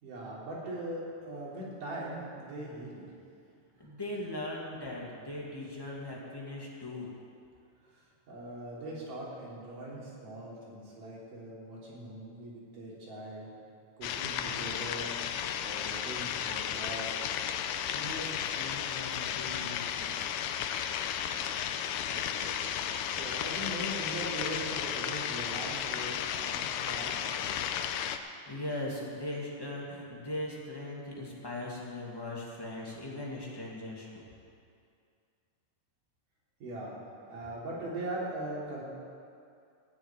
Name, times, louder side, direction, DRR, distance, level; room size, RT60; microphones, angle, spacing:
voice 1, 0.0-3.1 3.8-3.9 7.8-13.5 14.0-15.2 15.6-17.3 20.6-20.7 21.3-21.5 22.1-22.7 23.2-27.6 36.6-37.0 37.3-38.8, right 1 dB, 75° right, -6 dB, 4.9 m, -41 dB
voice 2, 3.8-7.1 17.7-20.3 28.5-34.3, left 1 dB, 10° left, -4 dB, 1.8 m, -39 dB
sound 1, 14.0-28.2, left 9 dB, 85° left, 2.2 m, -34 dB
16.0 x 7.2 x 9.1 m, 2.4 s
omnidirectional pair, 3.7 m